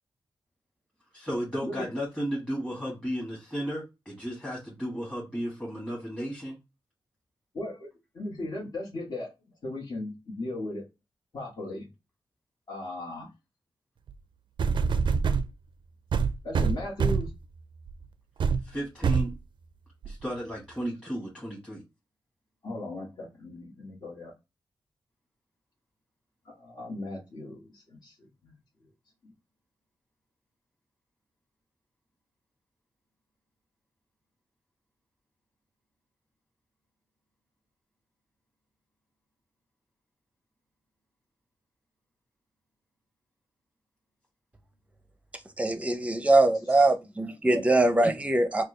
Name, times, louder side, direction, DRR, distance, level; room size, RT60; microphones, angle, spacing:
voice 1, 1.1-6.6 18.6-19.4 20.0-21.8, equal, 10° left, 1.3 m, -34 dB
voice 2, 7.5-7.9 8.1-9.3 9.6-10.8 11.3-11.9 12.7-13.3 16.4-17.3 22.6-24.3 26.4-28.5 29.2-29.3 46.7-46.9, left 2 dB, 55° left, 1.4 m, -37 dB
sound 1, 14.1-14.2 14.6-15.5 16.1-17.4 17.9-18.0 18.4-18.6 19.0-19.3 20.0-20.1, right 5 dB, 70° right, 0.4 m, -25 dB
voice 3, 45.6-48.6, right 2 dB, 15° right, 0.6 m, -22 dB
4.3 x 2.3 x 3.1 m
wide cardioid pair, 120°, 8 cm